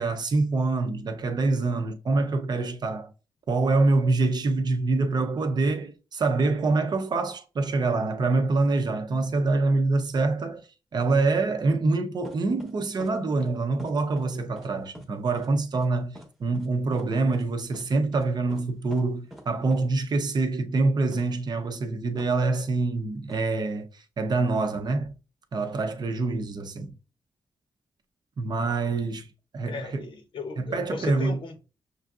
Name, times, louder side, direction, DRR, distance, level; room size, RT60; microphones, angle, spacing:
voice 1, 0.0-3.1 3.5-25.1 25.5-26.9 28.4-29.3 29.5-30.1 30.6-31.4, right 3 dB, 50° right, 0.6 m, -25 dB
sound 1, 12.2-12.7 13.0-13.1 13.4-13.5 13.8-14.3 14.6-14.7 14.9-15.1 15.4-15.5 15.7-15.9 16.1-16.3 16.5-16.7 16.9-17.0 17.3-17.4 17.7-17.9 18.1-18.2 18.5-18.6 18.9-19.0 19.3-19.4 19.7-19.8 21.1-21.2 22.2-22.3 23.3-23.4, equal, ahead, 0.9 m, -43 dB
voice 2, 29.7-31.6, left 4 dB, 65° left, 0.8 m, -36 dB
6.2 x 2.6 x 2.4 m
wide cardioid pair, 120°, 9 cm